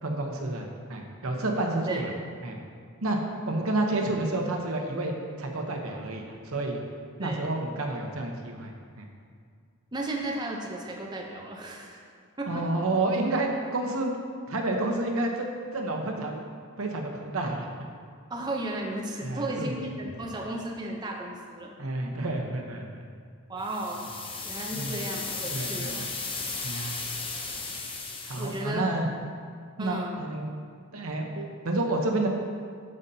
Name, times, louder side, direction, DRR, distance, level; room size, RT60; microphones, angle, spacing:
voice 1, 0.0-2.1 2.4-2.6 3.0-3.2 3.5-6.8 7.2-9.1 12.5-14.2 14.5-16.3 16.8-17.7 19.2-19.7 21.8-23.0 24.7-25.0 25.5-26.1 26.6-27.0 28.2-29.1 29.8-30.5 30.9-32.3, right 2 dB, 70° right, 2 dB, 0.9 m, -30 dB
voice 2, 9.9-12.0 12.4-12.6 18.3-21.7 23.5-24.1 24.4-26.0 28.4-29.0 29.8-30.2, right 1 dB, 20° right, -1 dB, 0.7 m, -34 dB
sound 1, 23.6-28.7, left 4 dB, 25° left, 0.7 m, -35 dB
13.0 x 5.4 x 2.8 m, 2.2 s
head